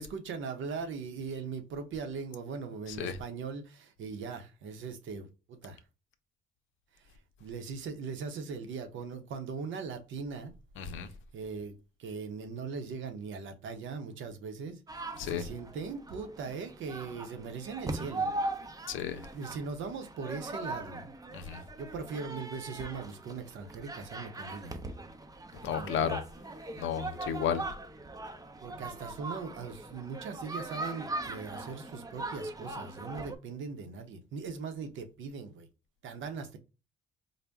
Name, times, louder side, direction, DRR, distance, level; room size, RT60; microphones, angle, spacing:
voice 1, 0.0-5.8 6.9-7.1 7.4-10.5 11.3-18.3 19.0-21.1 21.8-24.9 25.6-26.1 28.6-35.7 36.0-36.6, right 5 dB, 75° right, 0.8 m, -40 dB
voice 2, 10.8-11.1 15.2-15.4 18.9-19.2 21.3-21.6 25.6-26.2 26.8-27.6, left 8 dB, 80° left, 0.6 m, -32 dB
sound 1, 14.9-33.4, right 2 dB, 20° right, 0.6 m, -40 dB
4.0 x 2.1 x 3.4 m
cardioid pair, 90°, 20 cm